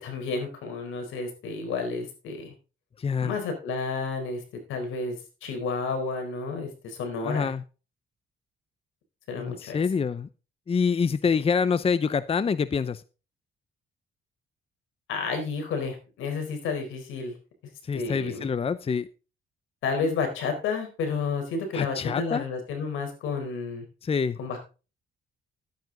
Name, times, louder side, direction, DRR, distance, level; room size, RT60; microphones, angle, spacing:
voice 1, 0.0-2.5 3.2-4.4 4.7-5.2 5.4-7.5 9.3-9.8 15.1-17.3 17.9-18.5 19.8-23.8 24.4-24.6, left 4 dB, 90° left, 5 dB, 4.3 m, -31 dB
voice 2, 3.0-3.4 7.2-7.6 9.4-10.3 10.7-13.0 17.8-19.1 21.7-22.4 24.0-24.4, left 5 dB, 30° left, 15 dB, 0.7 m, -26 dB
12.0 x 9.4 x 3.9 m, 0.33 s
cardioid pair, 90°, 20 cm